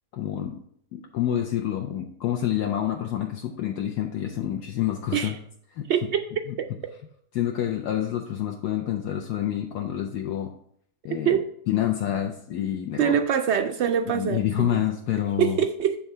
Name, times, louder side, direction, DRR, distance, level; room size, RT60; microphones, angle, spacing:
voice 1, 0.1-0.6 0.9-5.4 5.7-5.9 7.3-10.5 11.0-11.3 11.7-13.2 14.1-15.6, left 11 dB, 75° left, 2 dB, 1.2 m, -27 dB
voice 2, 5.9-6.2 11.2-11.4 13.0-14.8 15.4-16.0, right 8 dB, 80° right, 6 dB, 0.6 m, -24 dB
8.7 x 3.5 x 5.4 m, 0.68 s
omnidirectional pair, 1.7 m